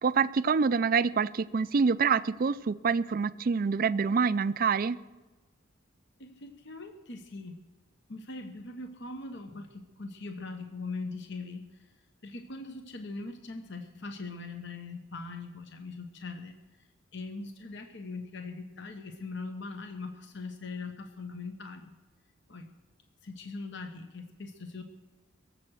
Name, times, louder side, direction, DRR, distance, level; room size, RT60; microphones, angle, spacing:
voice 1, 0.0-5.0, right 5 dB, 45° right, 15 dB, 0.4 m, -26 dB
voice 2, 6.2-7.6 8.1-11.9 12.2-16.9 17.1-21.9 22.5-22.7 23.2-24.8, left 3 dB, 60° left, 6 dB, 1.0 m, -41 dB
22.5 x 7.6 x 6.3 m, 1.2 s
head